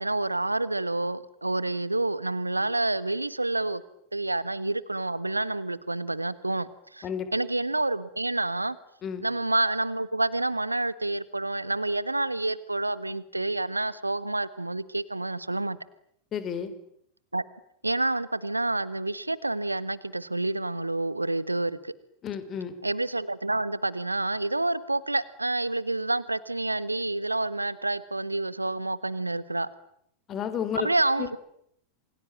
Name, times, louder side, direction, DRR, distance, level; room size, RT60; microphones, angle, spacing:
voice 1, 0.0-3.8 4.1-7.0 7.3-8.8 9.2-15.8 17.3-17.4 17.8-21.9 22.8-29.7 30.8-31.4, right 2 dB, 85° right, 17 dB, 1.4 m, -28 dB
voice 2, 16.3-16.7 22.2-22.7 30.3-30.9 31.2-31.4, left 8 dB, 30° left, 12 dB, 4.2 m, -31 dB
28.0 x 24.0 x 8.9 m, 0.71 s
figure-of-eight pair, 90°, 0 cm